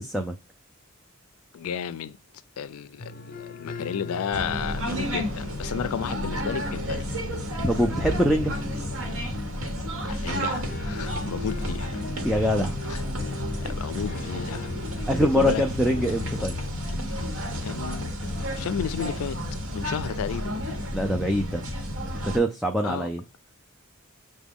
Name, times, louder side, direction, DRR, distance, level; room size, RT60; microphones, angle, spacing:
voice 1, 1.5-2.2 2.6-7.0 10.0-12.0 12.9-13.0 13.6-15.7 17.6-19.4 19.7-20.6 22.8-23.1, left 7 dB, 90° left, 0.4 m, -33 dB
sound 1, 3.0-16.7, left 3 dB, 45° left, 0.6 m, -41 dB
sound 2, 4.3-22.4, equal, 70° right, 1.1 m, -31 dB
voice 2, 7.6-8.5 12.2-12.7 15.1-16.6 20.9-21.6 22.2-23.2, equal, ahead, 0.3 m, -24 dB
5.9 x 2.2 x 3.5 m
head